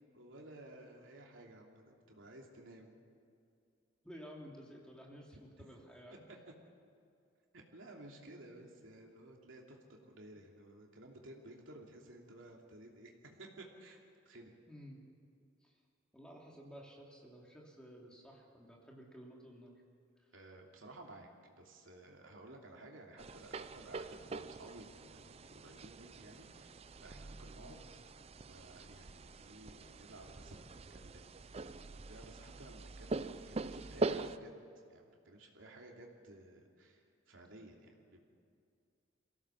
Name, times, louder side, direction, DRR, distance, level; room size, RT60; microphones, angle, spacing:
voice 1, 0.1-3.0 7.5-9.8 10.0-14.5 20.3-21.3 21.6-27.8 28.4-31.7 32.1-34.6 34.9-37.0 37.3-38.2, right 1 dB, 85° right, 0 dB, 3.0 m, -55 dB
voice 2, 4.0-6.2 14.7-15.0 15.6-15.8 16.1-19.7 20.2-20.3 27.5-27.8, equal, 5° left, -2 dB, 2.9 m, -53 dB
sound 1, 23.2-34.4, right 3 dB, 30° right, 0.5 m, -43 dB
23.0 x 16.5 x 7.2 m, 2.4 s
head